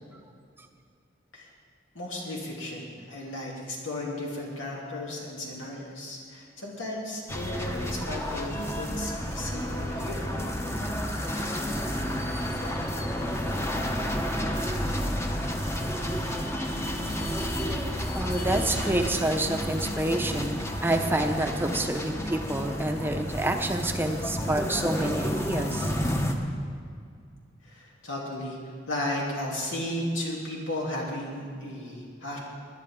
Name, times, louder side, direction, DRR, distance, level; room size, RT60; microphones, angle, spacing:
voice 1, 1.9-10.4 27.6-28.6 28.9-32.4, left 1 dB, 85° left, -3 dB, 3.0 m, -34 dB
sound 1, 7.3-26.4, equal, 15° left, 0.9 m, -30 dB
voice 2, 18.1-25.9, right 1 dB, 10° right, 4 dB, 0.7 m, -28 dB
20.5 x 10.5 x 3.7 m, 2.2 s
head